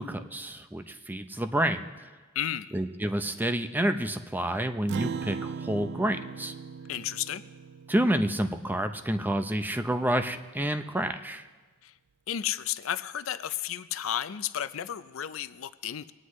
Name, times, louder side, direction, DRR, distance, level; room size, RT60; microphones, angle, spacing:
voice 1, 0.0-1.8 2.7-6.5 7.9-11.4, right 1 dB, 10° right, 8 dB, 0.5 m, -29 dB
voice 2, 2.3-2.8 6.9-7.4 11.8-11.9 12.3-16.1, left 10 dB, 70° left, 13 dB, 0.5 m, -33 dB
Acoustic guitar, 4.9-9.6, right 6 dB, 55° right, 0.3 m, -39 dB
21.5 x 9.6 x 3.1 m, 1.3 s
head